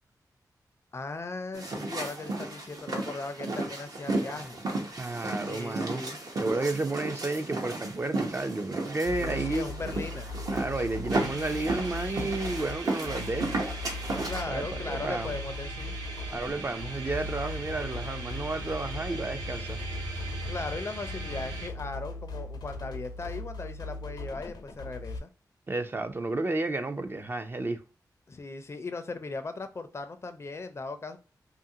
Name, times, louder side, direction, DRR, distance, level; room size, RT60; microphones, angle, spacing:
voice 1, 0.9-4.6 5.4-6.2 9.2-10.3 14.3-15.9 20.5-25.3 28.3-31.2, left 3 dB, 40° left, 0.4 m, -38 dB
sound 1, 1.5-14.4, right 2 dB, 60° right, 0.7 m, -34 dB
voice 2, 5.0-6.0 6.4-9.7 10.5-13.5 14.5-15.3 16.3-19.8 25.7-27.8, right 2 dB, 30° right, 0.4 m, -32 dB
sound 2, 9.0-25.2, left 2 dB, 90° left, 0.5 m, -39 dB
sound 3, 11.1-21.7, right 2 dB, 85° right, 1.1 m, -40 dB
2.6 x 2.4 x 2.7 m
wide cardioid pair, 95°, 7 cm